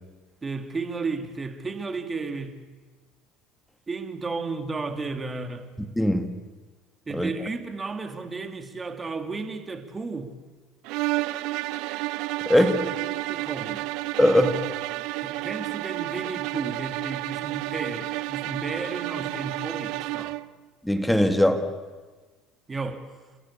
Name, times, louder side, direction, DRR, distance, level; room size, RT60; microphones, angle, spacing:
voice 1, 0.4-2.8 3.9-5.7 7.1-10.4 12.5-13.9 15.2-20.4 22.7-23.1, right 3 dB, 20° right, 2.3 m, -33 dB
voice 2, 6.0-6.3 7.1-7.3 12.5-12.8 14.2-14.6 20.8-21.7, left 1 dB, 5° left, 2.0 m, -20 dB
sound 1, 10.8-20.5, right 19 dB, 70° right, 0.6 m, -31 dB
30.0 x 15.0 x 8.5 m
supercardioid pair, 105°, 0 cm